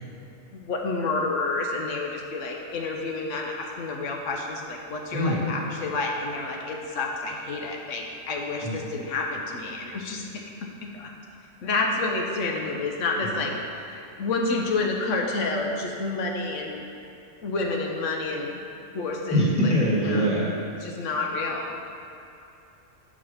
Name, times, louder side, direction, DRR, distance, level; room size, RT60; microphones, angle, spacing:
voice 1, 0.5-10.3 10.8-11.1 11.6-13.5 13.9-16.8 17.4-18.5 18.9-19.7 20.1-20.3 20.8-21.8, left 3 dB, 80° left, 1 dB, 1.1 m, -29 dB
voice 2, 5.1-5.5 8.6-8.8 13.2-13.3 19.3-20.5, equal, 5° right, -7 dB, 1.5 m, -23 dB
6.1 x 5.0 x 5.5 m, 2.8 s
omnidirectional pair, 1.3 m